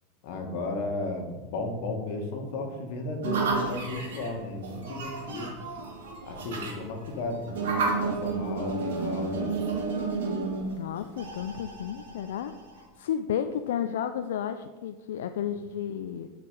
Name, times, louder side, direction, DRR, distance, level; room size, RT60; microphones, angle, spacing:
voice 1, 0.2-5.5 6.2-9.6, left 2 dB, 65° left, 3 dB, 1.5 m, -34 dB
sound 1, 3.2-12.8, right 3 dB, 85° right, 2.0 m, -32 dB
voice 2, 10.7-16.3, left 9 dB, 85° left, 9 dB, 0.4 m, -32 dB
8.8 x 4.8 x 4.7 m, 1.3 s
supercardioid pair, 135°, 0 cm